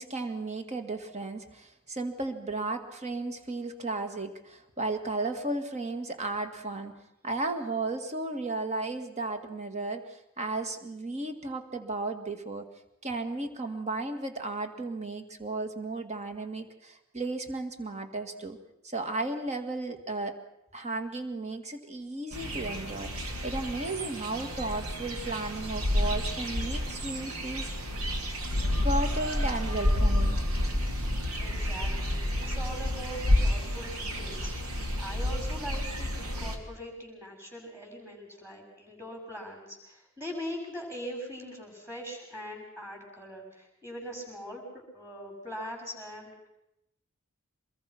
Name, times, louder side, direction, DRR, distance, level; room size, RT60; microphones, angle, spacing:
voice 1, 0.0-7.0 7.2-12.7 13.0-18.6 18.8-20.4 20.7-28.0 28.8-30.4, right 2 dB, 30° right, 8 dB, 1.9 m, -34 dB
sound 1, 22.3-36.6, left 1 dB, 80° right, 2.9 m, -30 dB
voice 2, 31.4-44.6 44.9-46.3, equal, 10° right, 0 dB, 6.6 m, -41 dB
24.5 x 21.5 x 5.9 m, 0.83 s
head